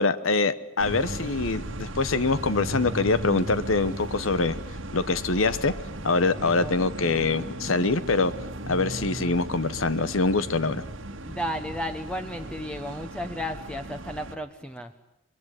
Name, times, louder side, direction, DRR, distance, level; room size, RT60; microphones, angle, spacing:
voice 1, 0.0-4.6 4.9-5.7 6.0-8.3 8.7-10.8, left 3 dB, 75° left, 14 dB, 1.1 m, -24 dB
sound 1, 0.8-14.4, right 1 dB, 70° right, 1.8 m, -36 dB
voice 2, 7.0-7.5 11.2-14.9, equal, 5° left, 7 dB, 1.0 m, -34 dB
23.5 x 22.5 x 9.9 m, 0.83 s
head